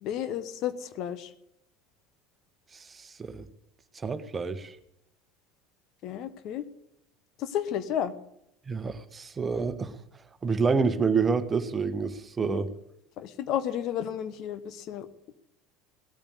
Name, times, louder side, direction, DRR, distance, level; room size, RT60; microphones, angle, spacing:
voice 1, 0.0-1.3 6.0-6.6 7.4-8.1 12.4-12.6 13.2-15.1, left 10 dB, 50° left, 13 dB, 1.1 m, -32 dB
voice 2, 2.7-3.5 3.9-4.8 8.7-9.9 10.4-12.7, right 5 dB, 25° right, 11 dB, 1.3 m, -28 dB
17.5 x 8.9 x 8.2 m, 0.80 s
hypercardioid pair, 70°, 0 cm